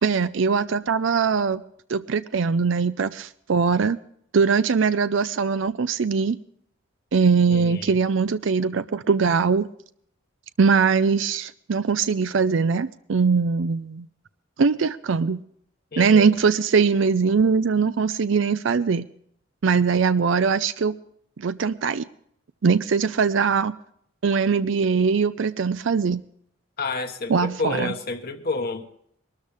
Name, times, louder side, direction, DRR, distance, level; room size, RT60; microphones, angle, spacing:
voice 1, 0.0-1.6 1.9-4.0 4.3-6.4 7.1-9.7 10.6-14.1 14.6-15.4 16.0-19.1 19.6-20.9 21.4-22.1 22.6-23.7 24.2-26.2 27.3-27.9, right 5 dB, 65° right, 0.5 m, -21 dB
voice 2, 7.5-8.0 15.9-16.3 26.8-28.9, left 3 dB, 50° left, 1.3 m, -30 dB
22.0 x 13.0 x 3.5 m
head